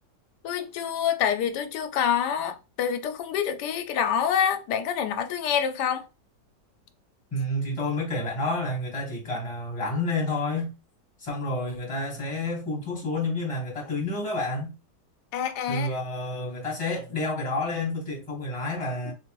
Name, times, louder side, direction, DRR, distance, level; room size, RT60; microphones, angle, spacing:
voice 1, 0.4-6.0 15.3-15.9, left 8 dB, 75° left, 1.2 m, -27 dB
voice 2, 7.3-10.7 11.2-14.7 15.7-19.1, left 2 dB, 20° left, 1.4 m, -29 dB
3.3 x 3.0 x 3.0 m
omnidirectional pair, 1.9 m